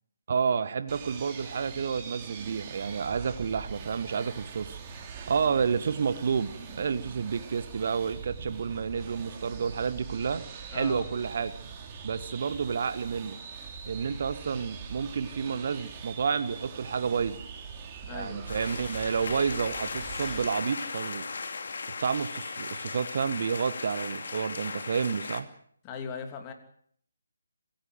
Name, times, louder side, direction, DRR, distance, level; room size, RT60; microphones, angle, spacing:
voice 1, 0.3-4.8 5.3-10.5 10.7-11.5 12.0-13.4 13.9-17.4 18.1-21.3 22.0-25.5, right 6 dB, 45° right, 12 dB, 1.3 m, -30 dB
sound 1, 0.9-20.5, right 5 dB, 20° right, 3.2 m, -43 dB
voice 2, 10.7-11.1 18.0-18.6 25.8-26.5, left 6 dB, 20° left, 5 dB, 3.1 m, -39 dB
sound 2, 18.5-25.4, left 4 dB, 50° left, 2.6 m, -37 dB
26.5 x 16.0 x 8.0 m, 0.66 s
figure-of-eight pair, 145°, 0 cm